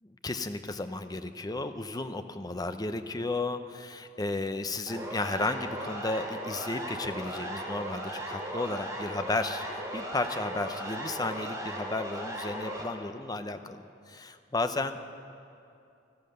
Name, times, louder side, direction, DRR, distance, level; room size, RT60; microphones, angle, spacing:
voice 1, 0.2-9.6 9.9-15.1, left 2 dB, 20° left, 9 dB, 0.6 m, -33 dB
Siren, 4.9-12.8, right 1 dB, 15° right, 2.4 m, -37 dB
16.0 x 13.0 x 6.6 m, 2.5 s
head